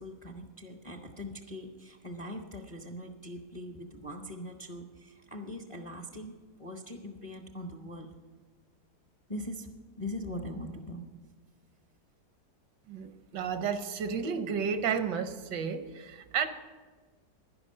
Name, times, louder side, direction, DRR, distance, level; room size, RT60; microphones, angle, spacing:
voice 1, 0.0-8.1 9.3-11.1, left 1 dB, 30° left, 3 dB, 0.6 m, -41 dB
voice 2, 12.9-16.5, right 6 dB, 80° right, 9 dB, 1.5 m, -32 dB
11.0 x 10.5 x 6.6 m, 1.4 s
omnidirectional pair, 1.9 m